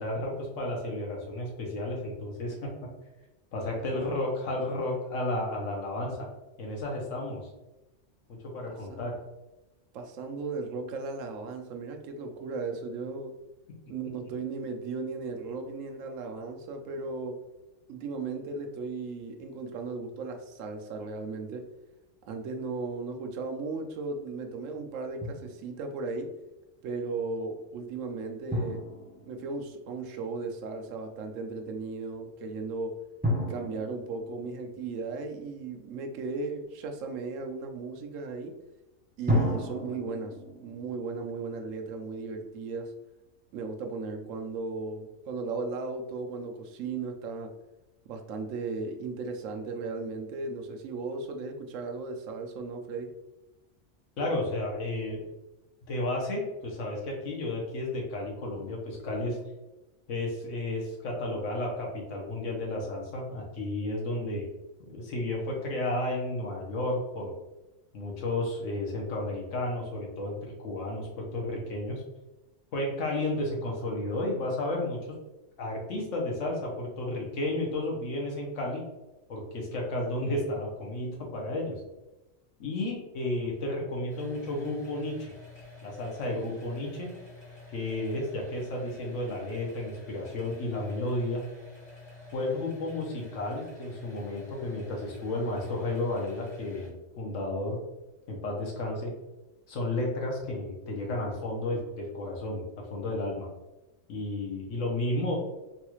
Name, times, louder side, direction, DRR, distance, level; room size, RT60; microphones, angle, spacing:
voice 1, 0.0-2.7 3.5-6.2 6.6-7.5 8.3-9.2 54.2-55.2 55.9-59.4 60.1-64.4 64.9-67.3 67.9-72.0 72.7-75.0 75.6-78.8 79.3-81.8 82.6-85.3 85.8-87.1 87.7-91.4 92.3-97.8 98.3-99.1 99.7-102.6 102.9-103.5 104.1-105.4, left 1 dB, 80° left, -1 dB, 1.3 m, -32 dB
voice 2, 8.6-9.1 9.9-13.3 13.9-17.4 17.9-21.6 22.3-26.3 26.8-28.8 29.3-32.9 33.5-38.5 39.2-42.9 43.5-47.5 48.0-53.1, right 3 dB, 90° right, 4 dB, 1.0 m, -36 dB
Drum, 25.2-26.0 28.5-30.3 33.2-35.7 39.3-42.4, equal, 15° right, 0.3 m, -34 dB
sound 1, 84.1-96.9, left 3 dB, 40° left, 1.2 m, -49 dB
3.9 x 2.3 x 3.0 m, 1.0 s
omnidirectional pair, 1.3 m